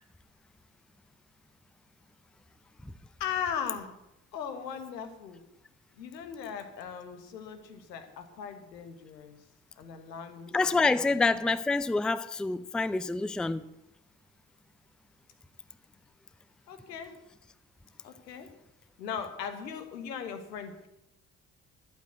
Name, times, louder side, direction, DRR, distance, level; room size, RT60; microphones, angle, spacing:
voice 1, 3.2-3.9 4.3-5.4 5.9-9.4 9.8-11.3 16.7-17.2 18.0-18.5 19.0-20.9, left 7 dB, 80° left, 1.6 m, -38 dB
voice 2, 10.5-13.6, left 3 dB, ahead, 0.5 m, -27 dB
12.0 x 8.3 x 7.9 m
figure-of-eight pair, 45°, 49 cm